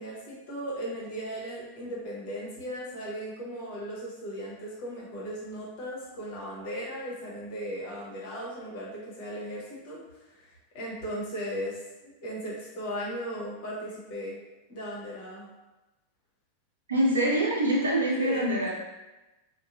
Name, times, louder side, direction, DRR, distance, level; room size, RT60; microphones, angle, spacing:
voice 1, 0.0-14.4 14.7-15.5 18.2-18.6, equal, 50° left, -5 dB, 0.9 m, -37 dB
voice 2, 16.9-18.7, right 1 dB, 70° right, -3 dB, 0.6 m, -25 dB
2.7 x 2.1 x 2.5 m, 1.1 s
figure-of-eight pair, 90°, 0 cm